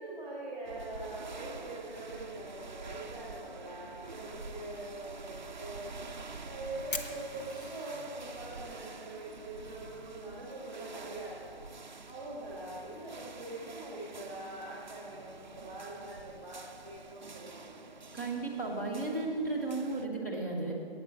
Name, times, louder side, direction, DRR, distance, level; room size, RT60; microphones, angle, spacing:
voice 1, 0.0-11.6 12.1-18.1, right 2 dB, 10° right, -6 dB, 1.4 m, -43 dB
sound 1, 0.6-20.1, right 4 dB, 50° right, 0.5 m, -47 dB
Fire, 5.9-17.4, left 3 dB, 60° left, 0.9 m, -51 dB
voice 2, 18.1-20.7, right 2 dB, 15° left, -5 dB, 1.1 m, -34 dB
8.4 x 7.1 x 7.7 m, 2.2 s
hypercardioid pair, 180°, 31 cm